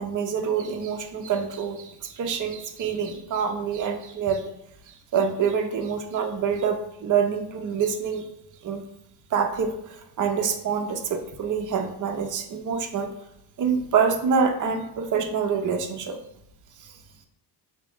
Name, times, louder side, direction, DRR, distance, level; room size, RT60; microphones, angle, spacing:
voice 1, 0.0-4.5 5.1-8.3 8.6-8.8 9.3-13.1 13.6-16.2 16.8-16.9, right 6 dB, 40° right, 4 dB, 0.6 m, -26 dB
3.5 x 2.4 x 3.5 m, 0.82 s
cardioid pair, 70°, 49 cm